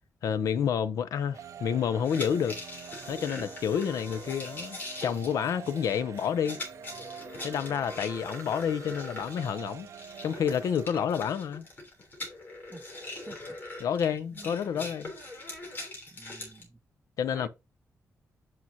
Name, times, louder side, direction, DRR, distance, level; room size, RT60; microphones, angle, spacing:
voice 1, 0.2-2.6 3.1-6.6 7.4-9.9 10.2-11.7 13.8-15.1 17.2-17.5, left 8 dB, 85° left, 0.6 m, -29 dB
sound 1, 1.3-10.9, right 8 dB, 65° right, 0.6 m, -46 dB
sound 2, 2.0-16.6, left 2 dB, 35° left, 3.4 m, -42 dB
voice 2, 13.3-13.6 14.3-14.9 16.1-16.8 17.3-17.5, right 2 dB, 15° right, 0.6 m, -49 dB
8.6 x 5.8 x 2.8 m
wide cardioid pair, 175°, 6 cm